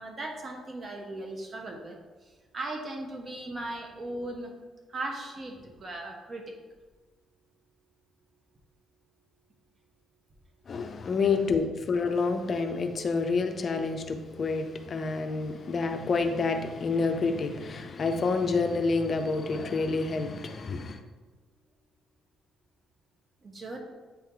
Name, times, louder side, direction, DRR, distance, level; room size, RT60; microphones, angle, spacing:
voice 1, 0.0-2.0 2.5-4.5 4.9-6.5 23.4-23.8, right 2 dB, 40° right, 1.1 m, -37 dB
voice 2, 10.7-21.0, left 4 dB, 45° left, 0.5 m, -28 dB
8.8 x 3.0 x 3.8 m
cardioid pair, 90°, 0 cm